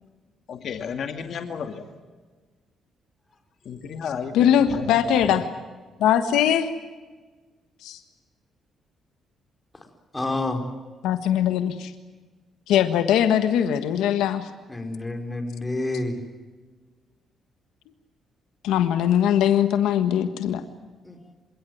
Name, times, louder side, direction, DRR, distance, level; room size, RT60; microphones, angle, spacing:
voice 1, 0.5-1.9 3.6-5.4, left 6 dB, 60° left, 6 dB, 2.2 m, -33 dB
voice 2, 4.3-5.4 6.0-6.7 7.8-8.0 11.0-11.9 12.7-14.5 18.6-20.6, left 10 dB, 90° left, 9 dB, 1.5 m, -21 dB
voice 3, 10.1-10.6 14.7-16.2 21.0-21.2, left 2 dB, 15° left, 5 dB, 4.5 m, -28 dB
28.0 x 17.5 x 9.3 m, 1.3 s
cardioid pair, 90°, 0 cm